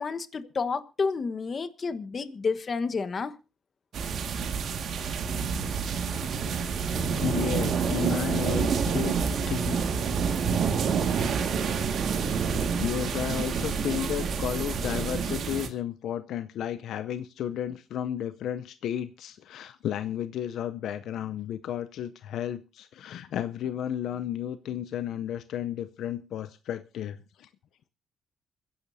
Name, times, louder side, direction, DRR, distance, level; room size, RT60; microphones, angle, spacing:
voice 1, 0.0-3.3, left 4 dB, 40° left, 12 dB, 1.2 m, -30 dB
sound 1, 3.9-15.7, right 6 dB, 65° right, 1.9 m, -28 dB
voice 2, 7.2-9.2 9.5-9.8 10.0-10.1 10.5-10.6 12.8-27.5, left 10 dB, 75° left, 13 dB, 0.6 m, -33 dB
26.5 x 10.5 x 2.7 m, 0.32 s
cardioid pair, 90°, 0 cm